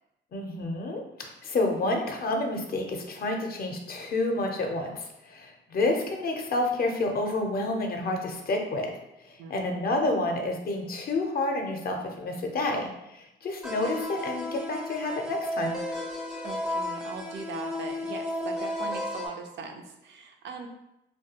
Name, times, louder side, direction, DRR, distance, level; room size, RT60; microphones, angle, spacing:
voice 1, 0.3-8.9 9.3-12.9 13.4-15.8, left 2 dB, 50° left, 2 dB, 0.5 m, -29 dB
voice 2, 9.4-9.9 16.4-20.7, right 4 dB, 65° right, 4 dB, 0.4 m, -40 dB
sound 1, 13.6-19.3, left 1 dB, 5° right, 0.4 m, -33 dB
2.3 x 2.2 x 2.8 m, 0.86 s
cardioid pair, 90°, 20 cm